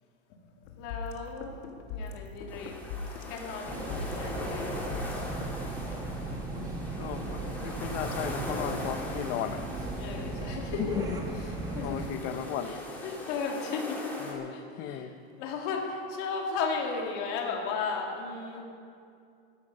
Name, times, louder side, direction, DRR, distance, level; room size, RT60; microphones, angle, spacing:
voice 1, 0.4-1.6 1.9-2.7 3.3-4.8 10.0-11.0 11.7-12.2 12.6-14.1 14.5-15.1 15.4-18.6, left 5 dB, 45° left, 0 dB, 2.4 m, -35 dB
sound 1, 0.6-5.8, left 5 dB, 65° left, 1.5 m, -41 dB
sound 2, 2.5-14.3, left 1 dB, 5° left, 2.1 m, -41 dB
sound 3, 3.6-12.1, right 2 dB, 10° right, 1.1 m, -37 dB
voice 2, 6.6-9.7 10.8-11.2 11.8-12.7 14.2-14.5 14.8-15.1, left 10 dB, 30° left, 10 dB, 0.7 m, -35 dB
14.5 x 13.5 x 5.3 m, 2.4 s
supercardioid pair, 165°, 33 cm